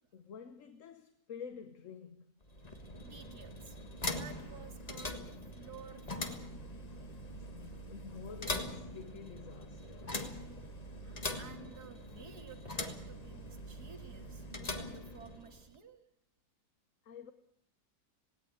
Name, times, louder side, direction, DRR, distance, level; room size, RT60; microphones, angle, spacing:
voice 1, 0.0-2.3 7.3-10.3 17.0-17.3, left 6 dB, 50° left, 1.3 m, -49 dB
sound 1, 2.4-15.7, left 2 dB, 25° left, 1.5 m, -42 dB
voice 2, 2.6-3.8 4.1-5.2 5.5-6.6 10.7-16.0, right 7 dB, 65° right, 2.3 m, -54 dB
18.5 x 17.0 x 8.6 m
omnidirectional pair, 1.8 m